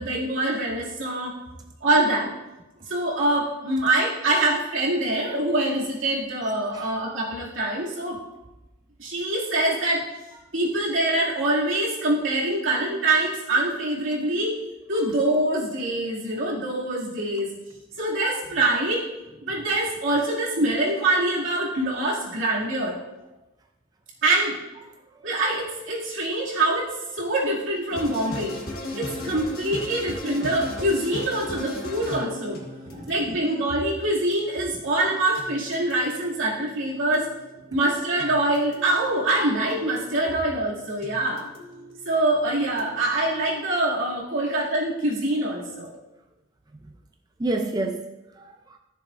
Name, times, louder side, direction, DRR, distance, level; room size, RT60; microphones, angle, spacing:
voice 1, 0.0-1.4 1.8-2.3 2.9-8.2 9.0-10.0 10.5-14.6 14.9-17.5 18.0-19.0 19.4-23.0 24.2-24.5 25.2-28.5 28.9-32.6 33.1-37.3 37.7-41.4 42.0-45.9, right 2 dB, 80° right, -5 dB, 2.5 m, -24 dB
voice 2, 24.8-25.3 32.8-33.1 37.7-37.8 40.3-40.4 46.7-46.9 47.4-48.8, right 2 dB, 20° right, 4 dB, 0.4 m, -31 dB
sound 1, 27.9-43.7, left 1 dB, 50° left, 1.4 m, -39 dB
14.0 x 6.8 x 2.6 m, 1.0 s
head